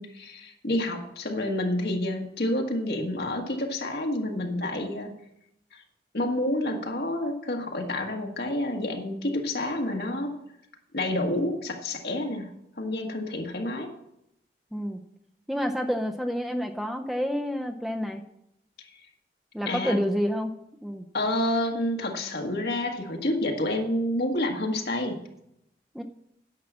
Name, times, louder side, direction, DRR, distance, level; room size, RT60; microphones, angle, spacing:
voice 1, 0.0-5.1 5.7-5.8 6.1-10.3 10.9-13.9 19.7-20.0 21.1-25.3, left 1 dB, 65° left, 2 dB, 1.6 m, -29 dB
voice 2, 14.7-15.0 15.5-18.2 19.5-20.5 20.8-21.1 25.9-26.0, equal, ahead, 4 dB, 0.5 m, -29 dB
10.5 x 6.2 x 7.3 m, 0.79 s
head